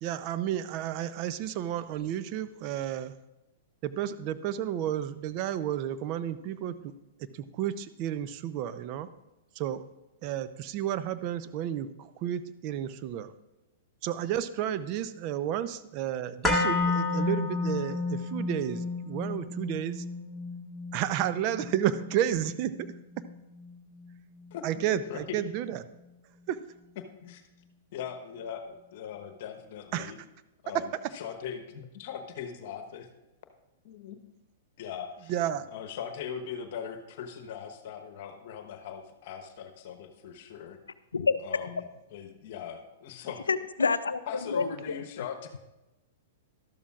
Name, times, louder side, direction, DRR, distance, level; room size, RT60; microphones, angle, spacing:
voice 1, 0.0-3.1 3.8-6.9 7.2-9.1 9.5-9.9 10.2-13.3 14.0-20.0 20.9-22.9 23.2-23.3 24.6-25.9 26.5-26.6 29.9-30.1 30.7-30.8 35.3-35.7, right 11 dB, 45° right, 0.6 m, -32 dB
sound 1, 16.4-24.5 24.8-24.9, left 3 dB, 10° left, 1.4 m, -32 dB
voice 2, 24.5-24.8 25.1-25.4 27.0-27.4 27.9-30.2 30.6-30.9 31.1-33.1 33.8-34.2 34.8-35.3 35.7-40.8 41.4-43.5 44.3-45.6, left 8 dB, 55° left, 1.1 m, -40 dB
voice 3, 41.1-41.5 43.5-44.2 44.5-45.0, left 4 dB, 85° left, 0.5 m, -27 dB
12.5 x 12.5 x 2.4 m
hypercardioid pair, 110°, 0 cm